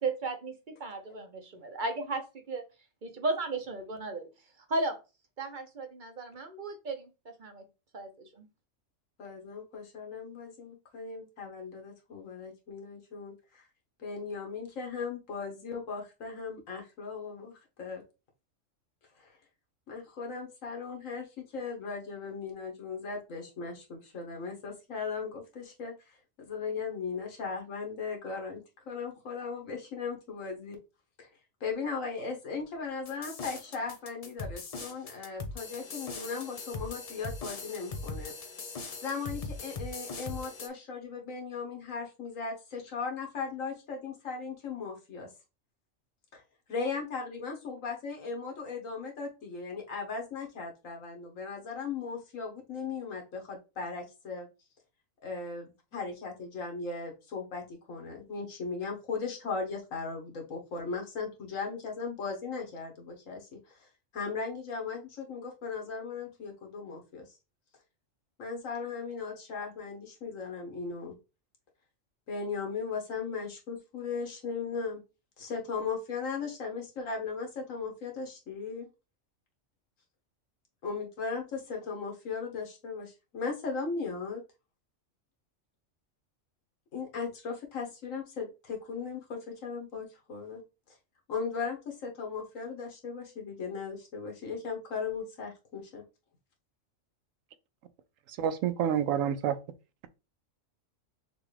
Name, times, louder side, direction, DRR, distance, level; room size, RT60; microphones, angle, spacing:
voice 1, 0.0-2.2 2.5-2.6 3.0-4.3 4.7-5.0 5.4-7.1 7.4-7.6 7.9-8.5, right 2 dB, 45° right, 0.8 m, -34 dB
voice 2, 9.2-13.6 14.0-17.5 17.8-18.0 19.2-19.4 19.9-28.6 28.9-30.8 31.2-31.3 31.6-38.3 39.0-45.3 46.3-46.4 46.7-54.5 55.2-63.9 64.1-67.3 68.4-71.2 72.3-75.0 75.4-78.9 80.8-84.4 86.9-90.6 91.3-96.0, left 5 dB, 85° left, 1.6 m, -37 dB
sound 1, 33.1-40.7, left 3 dB, 45° left, 0.5 m, -40 dB
voice 3, 98.3-99.6, right 9 dB, 85° right, 1.0 m, -28 dB
6.1 x 2.5 x 3.2 m
omnidirectional pair, 1.3 m